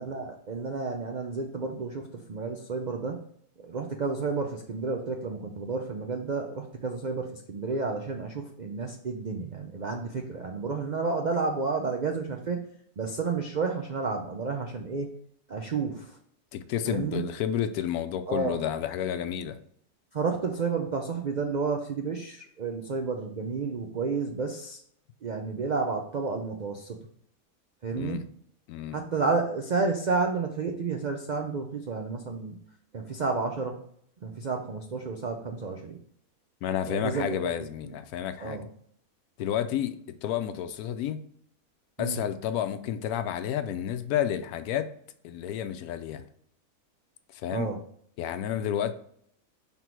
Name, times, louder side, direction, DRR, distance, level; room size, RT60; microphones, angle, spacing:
voice 1, 0.0-3.2 3.6-12.6 13.0-15.1 15.5-16.2 16.8-17.2 18.3-18.6 20.1-24.8 25.2-27.1 27.8-28.2 28.9-32.5 32.9-33.8 34.2-36.0 36.9-37.5 38.4-38.7 42.0-42.2 47.5-47.8, right 4 dB, 65° right, 3 dB, 0.4 m, -31 dB
voice 2, 16.5-19.6 27.9-28.3 28.7-29.0 36.6-38.6 39.4-41.2 42.0-44.9 45.2-46.2 47.3-47.7 48.2-48.9, left 10 dB, 80° left, 11 dB, 1.1 m, -30 dB
5.9 x 3.6 x 4.5 m, 0.67 s
omnidirectional pair, 1.6 m